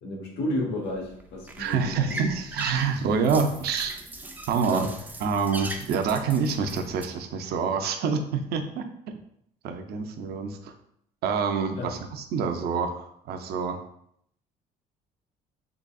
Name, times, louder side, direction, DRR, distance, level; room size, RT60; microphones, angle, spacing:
voice 1, 0.0-2.2 4.7-4.9 11.7-11.9, left 1 dB, 80° left, 0 dB, 1.1 m, -32 dB
sound 1, 0.8-7.0, right 1 dB, 10° right, 0.4 m, -39 dB
voice 2, 1.6-4.0 4.5-4.9 5.2-8.8 9.6-10.7 11.2-13.8, right 5 dB, 70° right, 6 dB, 0.5 m, -27 dB
3.7 x 3.4 x 2.3 m, 0.70 s
cardioid pair, 110°, 17 cm